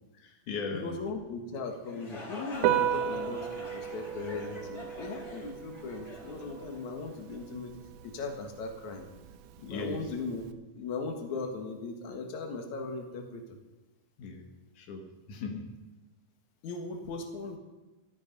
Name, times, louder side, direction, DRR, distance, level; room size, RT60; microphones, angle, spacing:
voice 1, 0.2-1.0 9.7-10.0 14.2-14.4 14.7-15.7, left 4 dB, 90° left, 2 dB, 1.7 m, -38 dB
voice 2, 0.7-9.0 9.6-10.4 10.7-13.6 16.6-17.6, left 4 dB, 65° left, 4 dB, 1.8 m, -38 dB
sound 1, 1.7-7.4, left 1 dB, 15° left, 2.9 m, -45 dB
Piano, 2.5-10.5, right 11 dB, 85° right, 3.5 m, -35 dB
16.5 x 13.0 x 5.3 m, 1.1 s
omnidirectional pair, 5.9 m